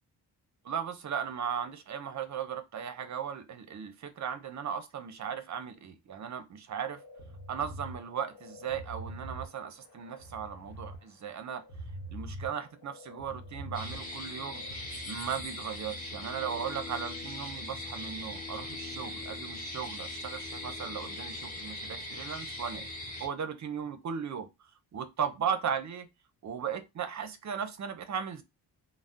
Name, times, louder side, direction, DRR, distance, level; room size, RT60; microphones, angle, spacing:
voice 1, 0.6-7.0 7.5-11.6 12.1-14.6 15.1-22.9 23.2-26.0 26.4-28.4, right 7 dB, 45° right, 0.5 m, -37 dB
sound 1, 6.9-15.5, right 1 dB, 75° left, 0.9 m, -45 dB
sound 2, 13.7-23.3, left 2 dB, 20° left, 0.8 m, -40 dB
2.6 x 2.0 x 3.4 m
cardioid pair, 115°, 42 cm